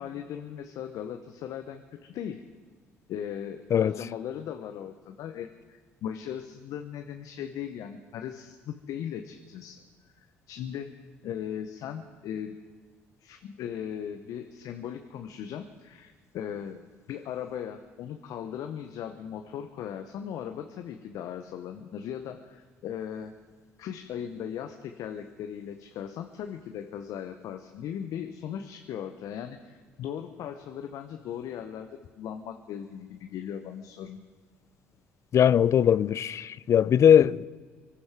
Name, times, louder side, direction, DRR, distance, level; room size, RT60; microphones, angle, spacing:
voice 1, 0.0-2.4 3.1-9.8 10.2-10.9 11.2-12.6 13.2-23.3 23.8-31.9 32.2-34.2, left 9 dB, 65° left, 0.8 m, -38 dB
voice 2, 35.3-37.4, left 9 dB, 50° left, 0.4 m, -20 dB
23.5 x 11.5 x 4.7 m
hypercardioid pair, 60°, 6 cm